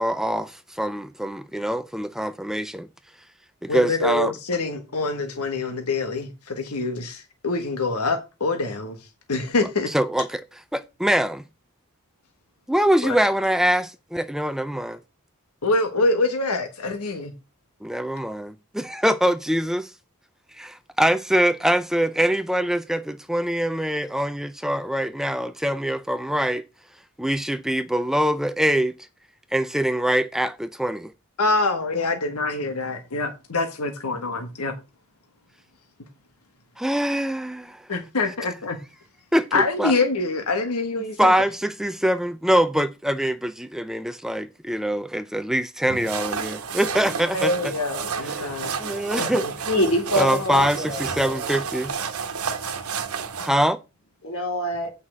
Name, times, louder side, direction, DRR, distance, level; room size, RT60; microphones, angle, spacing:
voice 1, 0.0-2.9 3.6-4.3 9.9-11.4 12.7-15.0 17.8-19.9 20.5-26.6 27.2-28.9 29.5-31.1 36.8-37.9 39.3-39.9 41.2-47.7 48.2-49.7 50.1-51.9 53.4-53.8, equal, ahead, 0.4 m, -24 dB
voice 2, 3.7-9.0 9.3-9.9 13.0-13.1 15.6-17.3 31.4-34.7 37.9-38.8 39.5-41.3 47.3-48.8 49.2-49.5, left 3 dB, 85° left, 1.4 m, -25 dB
sound 1, 45.9-53.5, right 6 dB, 80° right, 1.2 m, -31 dB
voice 3, 49.7-51.6 54.2-54.9, equal, 70° left, 3.8 m, -25 dB
8.6 x 5.6 x 6.1 m
head